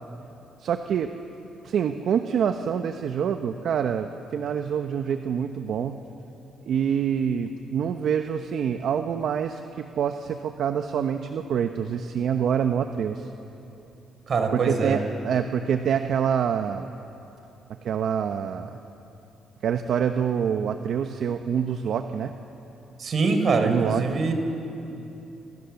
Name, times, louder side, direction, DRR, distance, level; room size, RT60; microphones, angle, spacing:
voice 1, 0.6-1.1 1.6-6.0 6.7-13.3 14.5-16.9 17.8-18.8 19.6-22.3 23.6-24.1, right 8 dB, 70° right, 7 dB, 1.1 m, -26 dB
voice 2, 14.3-15.0 23.0-24.3, right 4 dB, 50° right, 6 dB, 4.0 m, -23 dB
28.0 x 26.5 x 7.1 m, 2.9 s
cardioid pair, 90°, 0 cm